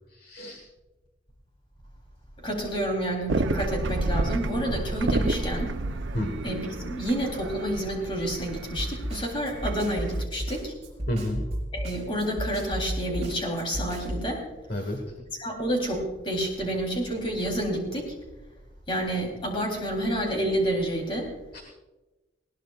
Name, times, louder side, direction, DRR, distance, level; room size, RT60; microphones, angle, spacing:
voice 1, 0.1-0.6 6.1-6.3 11.1-11.4 14.7-15.0 21.5-21.6, left 1 dB, 50° left, 3 dB, 1.5 m, -30 dB
voice 2, 2.4-5.7 6.4-10.7 11.7-14.4 15.4-18.2 18.9-21.3, right 1 dB, 25° left, 1 dB, 3.5 m, -29 dB
sound 1, 3.3-10.2, right 2 dB, 80° right, 0.7 m, -30 dB
Snare drum, 8.8-14.3, right 1 dB, 35° right, 4.7 m, -33 dB
20.5 x 17.5 x 2.5 m, 1.1 s
head